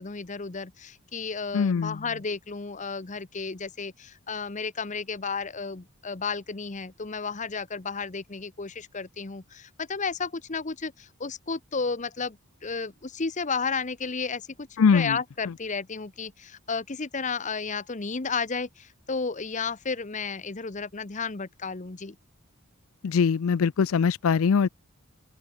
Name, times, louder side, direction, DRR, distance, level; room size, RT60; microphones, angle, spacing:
voice 1, 0.0-22.2, left 5 dB, 35° left, 0.9 m, -33 dB
voice 2, 1.5-2.0 14.8-15.2 23.0-24.7, left 6 dB, 70° left, 0.4 m, -22 dB
open air
head